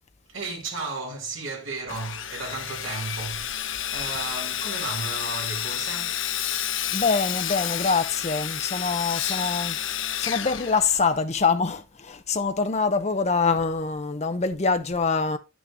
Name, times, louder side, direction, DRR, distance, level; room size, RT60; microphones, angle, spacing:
voice 1, 0.3-6.3, right 3 dB, 70° right, 2.5 m, -34 dB
Sawing, 1.9-11.3, left 11 dB, 65° left, 0.7 m, -30 dB
voice 2, 4.1-4.5 6.9-9.8 10.2-15.4, left 4 dB, 30° left, 0.6 m, -25 dB
8.9 x 6.2 x 3.4 m
head